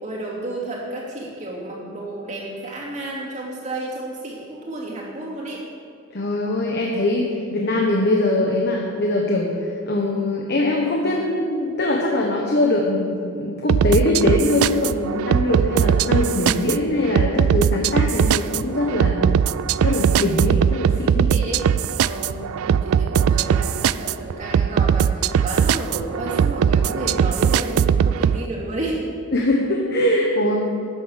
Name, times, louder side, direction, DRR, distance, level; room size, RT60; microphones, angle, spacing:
voice 1, 0.0-5.7 16.4-16.8 21.3-21.7 22.0-29.0, right 2 dB, 35° right, -4 dB, 2.9 m, -31 dB
voice 2, 6.1-19.2 19.8-21.3 29.3-30.6, left 1 dB, 50° left, -1 dB, 1.2 m, -22 dB
sound 1, 13.7-28.4, right 8 dB, 85° right, 0.3 m, -20 dB
12.5 x 9.4 x 6.5 m, 2.3 s
head